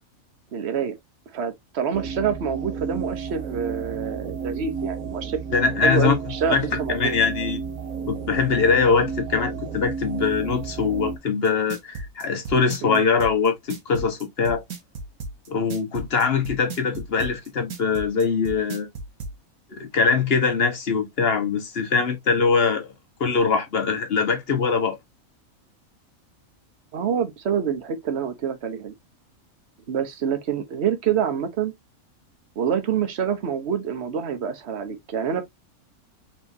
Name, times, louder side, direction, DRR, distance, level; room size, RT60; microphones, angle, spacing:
voice 1, 0.5-0.9 1.3-5.4 5.8-7.1 12.8-13.0 26.9-28.9 29.9-31.7 32.6-35.4, right 7 dB, 50° right, 1.1 m, -26 dB
sound 1, 1.9-11.2, right 5 dB, 65° right, 1.4 m, -32 dB
voice 2, 5.5-6.2 6.5-6.7 6.9-7.6 8.1-14.6 15.5-18.9 19.7-22.9 23.2-25.0, left 5 dB, 45° left, 1.3 m, -22 dB
sound 2, 11.4-19.3, right 3 dB, 90° right, 1.6 m, -34 dB
4.6 x 3.7 x 2.7 m
omnidirectional pair, 1.5 m